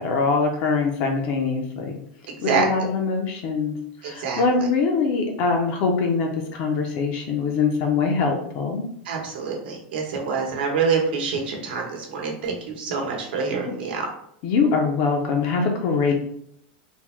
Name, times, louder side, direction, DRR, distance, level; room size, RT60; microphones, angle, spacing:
voice 1, 0.0-1.9 2.4-3.7 4.0-8.8 14.4-16.1, left 4 dB, 40° left, 2 dB, 0.4 m, -23 dB
voice 2, 2.4-2.9 4.0-4.7 9.0-14.0, right 5 dB, 75° right, 0 dB, 0.9 m, -26 dB
3.5 x 2.0 x 3.0 m, 0.69 s
supercardioid pair, 170°, 5 cm